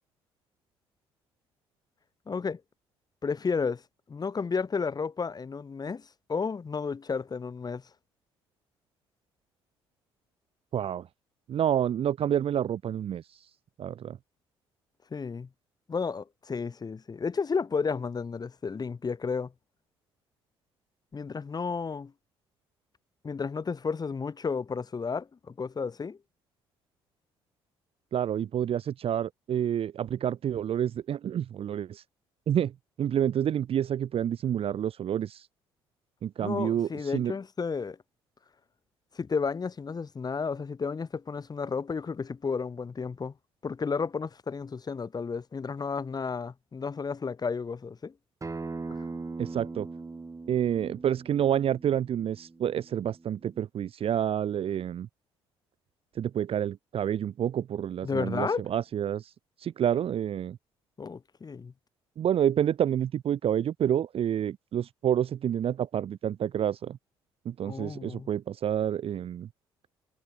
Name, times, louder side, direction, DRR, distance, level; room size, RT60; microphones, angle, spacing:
voice 1, 2.3-2.6 3.2-3.8 4.1-7.8 15.1-15.5 15.9-19.5 21.1-22.1 23.2-26.2 36.4-38.0 39.1-43.3 43.6-48.1 48.9-49.0 58.0-58.6 61.0-61.7 67.7-68.3, left 5 dB, 30° left, 1.6 m, -32 dB
voice 2, 10.7-11.1 11.5-13.2 13.8-14.2 28.1-32.0 32.5-32.7 33.0-35.5 36.2-37.3 49.4-49.9 50.5-55.1 56.2-59.3 59.6-60.6 62.2-67.0 67.4-69.5, right 10 dB, 45° right, 0.8 m, -28 dB
Acoustic guitar, 48.4-53.6, right 3 dB, 25° right, 3.7 m, -41 dB
figure-of-eight pair, 50°, 13 cm